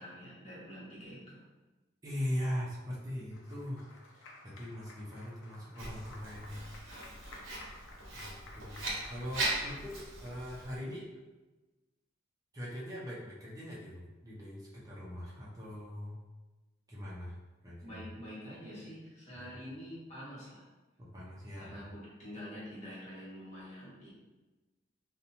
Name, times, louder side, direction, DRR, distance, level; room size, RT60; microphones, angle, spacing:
voice 1, 0.0-1.4 17.8-20.6 21.6-24.1, equal, 35° left, -9 dB, 1.1 m, -46 dB
voice 2, 2.0-6.6 8.1-11.1 12.5-16.2 16.9-17.4 17.6-18.0 19.4-19.5 21.0-21.9, equal, 20° right, -6 dB, 0.5 m, -41 dB
Applause, 3.3-10.3, left 2 dB, 80° left, 0.5 m, -54 dB
Writing, 5.8-10.8, right 2 dB, 90° right, 0.7 m, -39 dB
2.6 x 2.1 x 2.8 m, 1.1 s
head